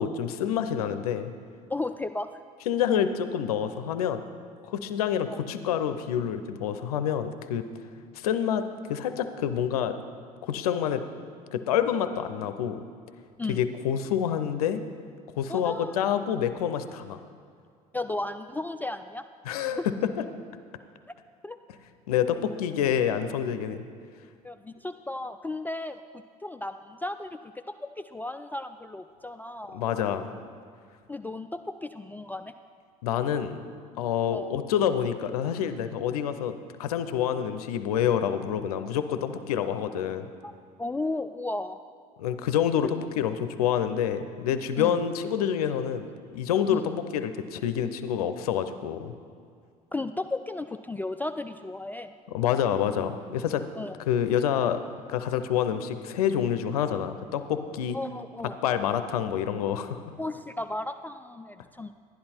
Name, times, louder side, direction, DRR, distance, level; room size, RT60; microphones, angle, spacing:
voice 1, 0.0-1.3 2.7-4.2 4.7-7.7 8.1-8.6 8.9-10.0 10.4-11.0 11.5-12.8 13.5-14.8 15.4-17.2 19.5-19.8 22.1-23.8 29.7-30.3 33.0-33.7 34.0-40.3 42.2-46.1 46.3-49.1 52.3-53.6 54.1-54.8 55.1-58.0 58.6-60.0, left 9 dB, 85° left, 10 dB, 0.6 m, -27 dB
voice 2, 1.7-2.3 5.3-5.4 13.4-13.6 15.5-16.0 17.9-19.2 21.4-21.6 24.4-26.0 26.4-27.4 27.8-29.8 31.1-32.5 34.3-34.5 40.4-40.5 40.8-41.8 44.8-45.0 46.7-46.9 49.9-52.2 53.8-54.0 57.9-58.6 60.2-61.9, left 2 dB, 10° left, 7 dB, 0.3 m, -34 dB
11.5 x 10.5 x 4.3 m, 2.2 s
hypercardioid pair, 70°, 19 cm